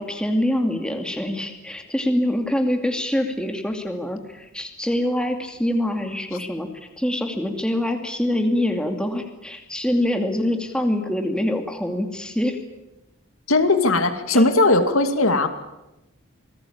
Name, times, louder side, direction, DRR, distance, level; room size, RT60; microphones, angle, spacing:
voice 1, 0.0-6.7 7.0-12.6 14.3-14.4, left 1 dB, 5° left, 4 dB, 2.5 m, -24 dB
voice 2, 13.5-15.5, left 2 dB, 80° left, 7 dB, 2.5 m, -18 dB
27.0 x 20.0 x 8.8 m, 0.96 s
head